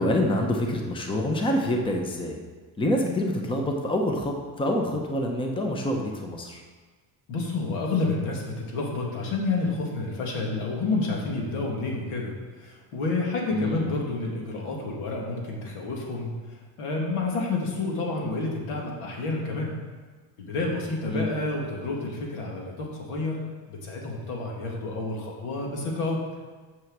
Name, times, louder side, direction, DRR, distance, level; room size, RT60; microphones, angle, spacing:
voice 1, 0.0-2.4 2.8-6.6 13.5-13.9 21.1-21.3, left 1 dB, 10° left, 2 dB, 0.8 m, -26 dB
voice 2, 7.3-12.3 12.6-16.3 16.8-19.7 20.4-23.4 23.7-26.2, left 3 dB, 85° left, -1 dB, 2.3 m, -29 dB
6.3 x 6.2 x 7.3 m, 1.4 s
cardioid pair, 150°, 48 cm